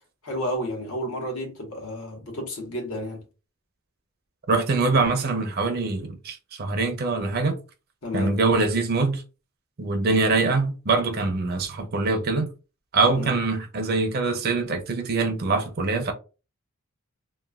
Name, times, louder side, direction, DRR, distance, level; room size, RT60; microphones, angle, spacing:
voice 1, 0.2-3.2 8.0-8.3 13.1-13.4, equal, 85° left, 1.1 m, -31 dB
voice 2, 4.5-7.6 8.1-9.2 9.8-12.5 12.9-16.1, right 3 dB, 45° right, 0.5 m, -24 dB
3.0 x 2.2 x 2.3 m
head